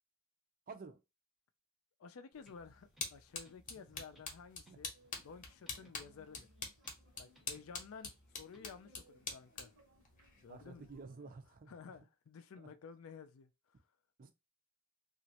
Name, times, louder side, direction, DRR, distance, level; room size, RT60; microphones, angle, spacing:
voice 1, 0.7-1.0 4.7-4.8 5.8-5.9 10.5-12.0 12.6-12.7 14.2-14.3, right 4 dB, 45° right, 0.5 m, -52 dB
voice 2, 2.0-4.9 5.2-6.5 7.2-9.7 10.4-10.9 11.7-13.5, left 5 dB, 85° left, 0.4 m, -53 dB
sound 1, 2.3-11.0, left 4 dB, 40° left, 0.8 m, -47 dB
sound 2, 2.4-8.9, equal, ahead, 0.6 m, -67 dB
sound 3, 4.9-11.3, left 1 dB, 70° right, 0.9 m, -69 dB
3.0 x 2.5 x 2.8 m
head